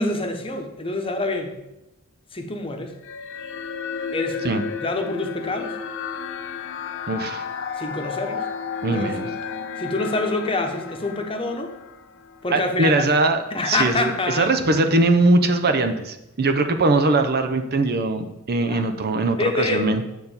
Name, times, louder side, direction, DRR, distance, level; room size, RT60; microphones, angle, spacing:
voice 1, 0.0-1.5 2.3-2.9 4.1-4.4 4.8-5.8 7.8-8.5 8.9-9.1 9.8-11.7 12.4-13.1 13.5-14.5 15.7-15.8 18.7-18.8 19.4-19.9, left 2 dB, 25° left, 4 dB, 1.0 m, -26 dB
sound 1, 3.0-12.5, left 5 dB, 60° left, 0.7 m, -32 dB
voice 2, 7.1-7.5 8.8-9.3 12.5-20.0, right 2 dB, 45° right, 8 dB, 0.7 m, -21 dB
9.2 x 4.0 x 7.2 m, 0.94 s
head